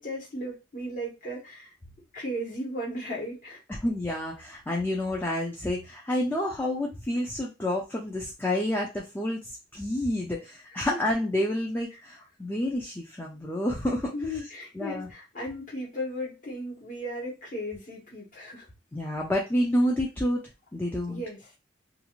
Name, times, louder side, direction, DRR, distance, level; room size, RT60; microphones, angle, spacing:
voice 1, 0.0-1.7 2.1-3.6 10.7-10.9 14.1-18.7 21.1-21.5, equal, 45° left, -5 dB, 1.2 m, -36 dB
voice 2, 3.7-14.1 14.8-15.1 18.9-20.4 20.7-21.2, left 1 dB, 10° left, -1 dB, 0.4 m, -29 dB
2.5 x 2.4 x 2.9 m, 0.28 s
head